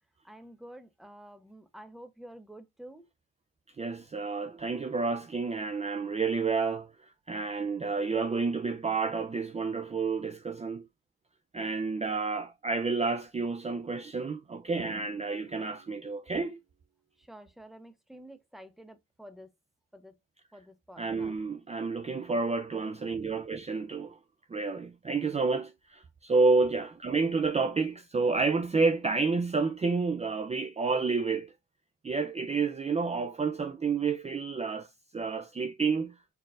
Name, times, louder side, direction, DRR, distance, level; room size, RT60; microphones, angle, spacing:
voice 1, 0.2-3.1 17.2-19.5 19.9-20.2 20.5-21.4, right 1 dB, ahead, 0.9 m, -49 dB
voice 2, 3.8-10.9 11.5-16.6 21.0-24.2 24.5-31.5 32.0-36.1, right 4 dB, 20° right, 0.5 m, -30 dB
Drum, 14.8-16.9, right 4 dB, 55° right, 1.5 m, -52 dB
4.5 x 3.9 x 2.5 m
cardioid pair, 90°, 30 cm